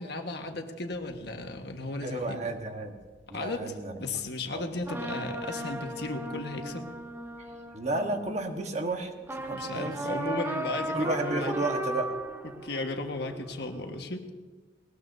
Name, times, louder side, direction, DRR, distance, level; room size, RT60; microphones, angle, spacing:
voice 1, 0.0-2.4 3.3-3.7 4.0-6.9 9.5-11.5 12.6-14.3, left 2 dB, 60° left, 4 dB, 1.4 m, -35 dB
sound 1, 1.1-1.4 2.6-2.7 4.8-8.8 9.2-14.0, right 1 dB, 10° right, 0.7 m, -36 dB
voice 2, 2.0-3.0 3.3-4.1 4.5-4.7 7.4-10.0 10.9-12.1, right 2 dB, 35° right, 4 dB, 1.3 m, -33 dB
20.0 x 19.0 x 2.7 m, 1.4 s
head